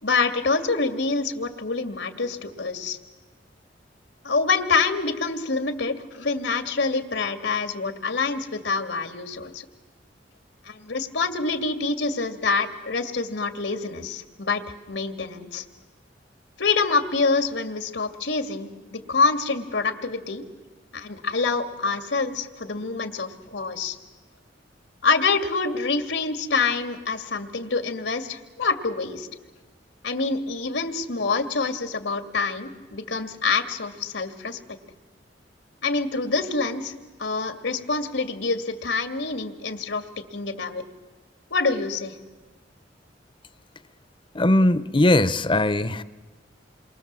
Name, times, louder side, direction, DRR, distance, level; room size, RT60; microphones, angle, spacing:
voice 1, 0.0-3.0 4.2-9.6 10.7-14.6 14.9-15.6 16.6-20.4 20.9-24.0 25.0-29.3 30.0-34.6 35.8-36.9 37.2-40.8 41.5-42.1, left 4 dB, 85° left, 2.2 m, -26 dB
voice 2, 44.3-46.0, left 1 dB, 30° left, 0.9 m, -20 dB
28.5 x 23.0 x 7.6 m
head